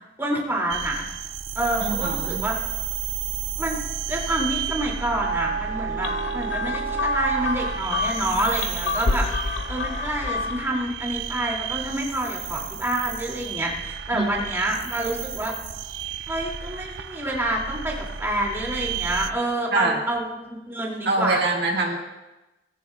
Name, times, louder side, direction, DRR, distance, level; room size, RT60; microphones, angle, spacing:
voice 1, 0.2-1.1 1.5-2.6 3.6-3.8 4.1-15.5 16.3-20.3 20.7-21.4, right 1 dB, 15° right, -2 dB, 2.5 m, -27 dB
sound 1, 0.7-19.3, right 7 dB, 80° right, 0.6 m, -32 dB
voice 2, 1.8-2.4 14.1-14.3 19.7-20.0 21.1-22.0, right 2 dB, 65° right, -1 dB, 1.8 m, -24 dB
sound 2, 6.0-10.8, left 3 dB, 75° left, 0.7 m, -28 dB
19.5 x 15.0 x 2.3 m, 1.0 s
head